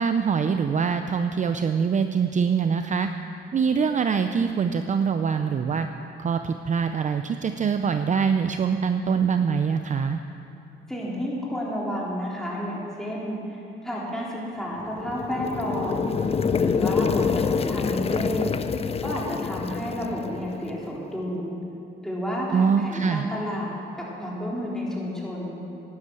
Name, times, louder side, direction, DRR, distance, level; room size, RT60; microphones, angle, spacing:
voice 1, 0.0-3.1 3.5-5.9 6.2-10.2 22.5-23.3, right 6 dB, 40° right, 8 dB, 0.5 m, -24 dB
voice 2, 10.9-16.1 16.6-18.5 19.0-21.6 22.0-25.6, equal, ahead, -5 dB, 4.0 m, -31 dB
sound 1, 14.8-20.9, left 6 dB, 30° left, 0.5 m, -26 dB
12.0 x 10.5 x 7.6 m, 2.8 s
cardioid pair, 90°, 20 cm